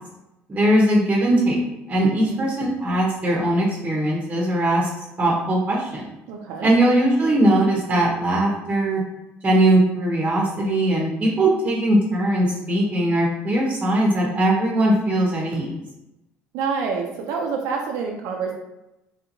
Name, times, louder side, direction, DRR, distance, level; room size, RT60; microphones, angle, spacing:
voice 1, 0.5-1.6 1.9-4.9 5.2-6.1 6.6-9.0 9.4-15.7, right 1 dB, 25° right, -3 dB, 0.8 m, -20 dB
voice 2, 2.1-2.4 6.3-6.7 16.5-18.5, right 5 dB, 90° right, 1 dB, 0.4 m, -27 dB
3.3 x 2.8 x 2.6 m, 0.92 s
cardioid pair, 115°, 5 cm